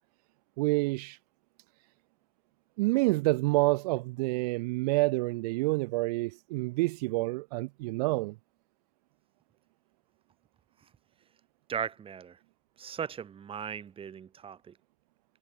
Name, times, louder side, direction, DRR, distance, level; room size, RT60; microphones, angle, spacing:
voice 1, 0.6-1.2 2.8-8.3, right 23 dB, 70° right, 0.9 m, -28 dB
voice 2, 11.7-12.4 12.8-14.8, right 8 dB, 25° right, 6.0 m, -37 dB
supercardioid pair, 120°, 21 cm